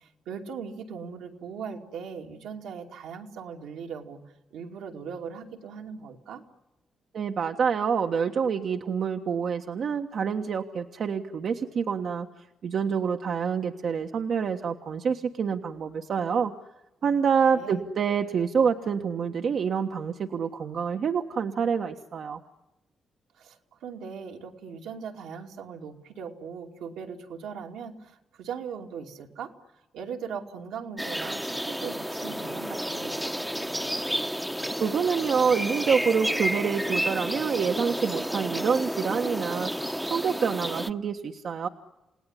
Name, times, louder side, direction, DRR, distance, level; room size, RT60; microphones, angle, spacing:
voice 1, 0.0-4.2 4.5-6.4 17.5-17.9 23.4-33.9, right 6 dB, 85° right, 2 dB, 2.6 m, -39 dB
voice 2, 7.1-16.5 17.0-22.4 34.8-39.7 40.1-41.7, right 6 dB, 70° right, 4 dB, 1.4 m, -27 dB
sound 1, 31.0-40.9, equal, ahead, 1.1 m, -31 dB
29.5 x 18.0 x 9.9 m, 1.0 s
supercardioid pair, 50°, 0 cm